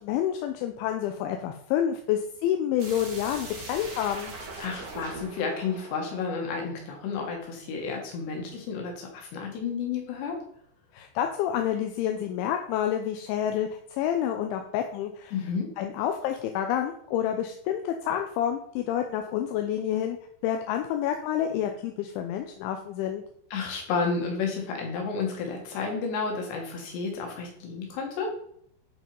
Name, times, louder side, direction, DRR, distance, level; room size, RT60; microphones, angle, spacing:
voice 1, 0.0-4.3 10.9-15.3 15.8-20.2 20.4-23.2, left 10 dB, 80° left, 5 dB, 3.1 m, -28 dB
sound 1, 2.8-7.5, right 2 dB, 30° right, 1.7 m, -42 dB
voice 2, 4.6-10.4 15.3-15.7 23.5-28.3, left 5 dB, 65° left, 1 dB, 4.3 m, -31 dB
11.0 x 5.5 x 5.3 m, 0.65 s
omnidirectional pair, 5.6 m